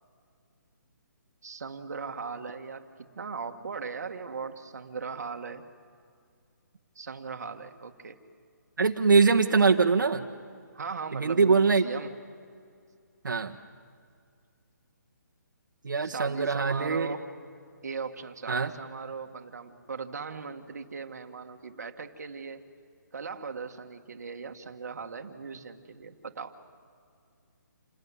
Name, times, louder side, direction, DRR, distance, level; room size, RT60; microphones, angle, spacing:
voice 1, 1.4-2.9 3.2-5.6 7.0-8.2 10.7-12.1 16.0-17.3 17.8-22.6 23.1-26.6, right 5 dB, 55° right, 4 dB, 1.8 m, -38 dB
voice 2, 8.8-10.2 11.1-11.8 13.2-13.5 15.8-17.1 18.5-18.7, right 4 dB, 85° right, 4 dB, 1.5 m, -23 dB
28.0 x 19.0 x 9.7 m, 2.2 s
hypercardioid pair, 175°, 10 cm